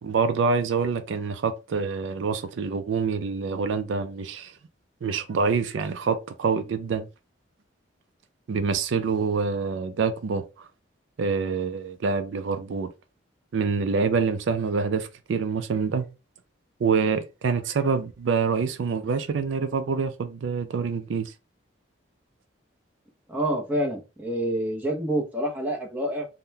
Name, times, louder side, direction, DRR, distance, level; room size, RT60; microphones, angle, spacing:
voice 1, 0.0-4.6 5.0-7.1 8.5-10.7 11.2-12.9 13.5-16.1 16.8-21.3, right 5 dB, 70° right, 0.4 m, -26 dB
voice 2, 23.3-26.3, right 1 dB, 10° right, 0.7 m, -27 dB
3.7 x 2.1 x 2.7 m
head